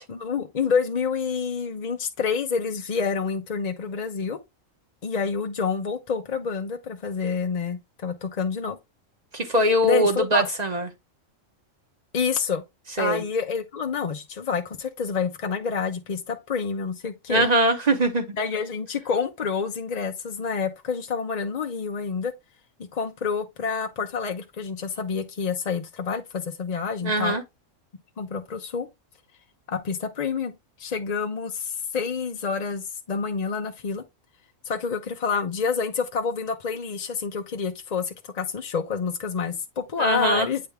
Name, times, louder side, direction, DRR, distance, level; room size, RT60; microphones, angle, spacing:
voice 1, 0.1-4.4 5.0-8.8 9.5-9.6 9.8-10.5 12.1-12.6 13.0-17.5 18.4-22.3 22.9-27.4 28.2-28.9 29.7-34.0 34.6-40.7, left 5 dB, 45° left, 0.6 m, -28 dB
voice 2, 9.3-10.9 13.0-13.2 17.3-18.3 27.0-27.4 40.0-40.5, right 1 dB, 35° right, 1.0 m, -22 dB
8.7 x 3.4 x 3.4 m
omnidirectional pair, 1.4 m